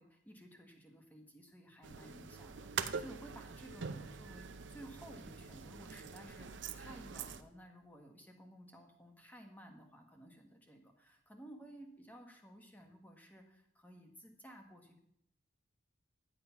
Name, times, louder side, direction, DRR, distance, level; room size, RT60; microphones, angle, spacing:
voice 1, 0.0-15.0, right 1 dB, 10° left, 3 dB, 1.4 m, -55 dB
sound 1, 1.8-7.4, right 6 dB, 70° right, 0.6 m, -44 dB
10.5 x 7.9 x 5.8 m, 0.75 s
head